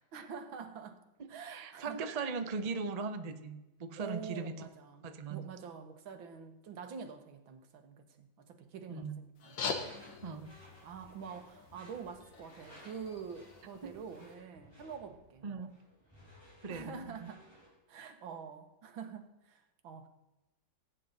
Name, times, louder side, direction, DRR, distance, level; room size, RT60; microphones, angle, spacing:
voice 1, 0.1-1.0 1.3-2.0 4.0-9.6 10.8-15.7 16.7-17.4 17.9-20.1, right 6 dB, 85° right, 7 dB, 2.0 m, -46 dB
voice 2, 1.2-4.7 5.0-5.4 8.9-9.2 10.2-10.5 13.8-14.0 15.4-15.8 16.6-17.3, right 4 dB, 40° right, 8 dB, 0.5 m, -39 dB
sound 1, 9.4-14.3, left 5 dB, 70° left, 1.9 m, -44 dB
Door / Screech, 9.5-17.8, equal, 10° left, 4.1 m, -58 dB
17.0 x 9.1 x 4.0 m, 1.0 s
omnidirectional pair, 2.1 m